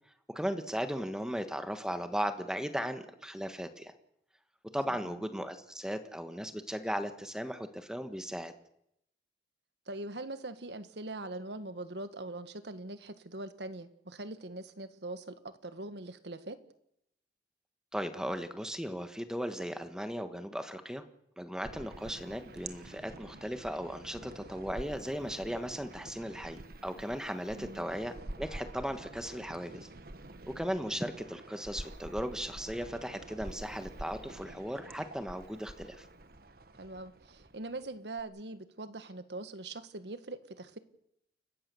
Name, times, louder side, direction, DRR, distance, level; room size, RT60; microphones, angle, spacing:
voice 1, 0.3-3.9 4.7-8.5 17.9-21.0 21.4-29.8 30.5-36.0, equal, 5° right, 8 dB, 1.4 m, -37 dB
voice 2, 4.9-5.2 9.9-16.6 27.5-27.8 36.8-40.8, right 2 dB, 75° right, 11 dB, 1.6 m, -42 dB
sound 1, 21.6-38.2, right 2 dB, 60° right, 1.3 m, -48 dB
29.5 x 15.5 x 7.0 m, 0.77 s
head